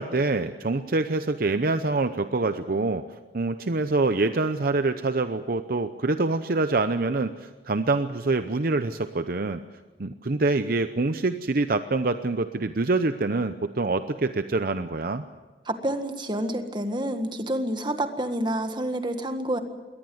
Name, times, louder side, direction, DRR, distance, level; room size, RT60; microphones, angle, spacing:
voice 1, 0.0-3.0 3.3-9.6 10.0-15.2, right 3 dB, 55° right, 10 dB, 0.7 m, -25 dB
voice 2, 15.6-19.6, right 1 dB, 25° right, 7 dB, 1.7 m, -28 dB
22.5 x 18.5 x 7.9 m, 1.3 s
head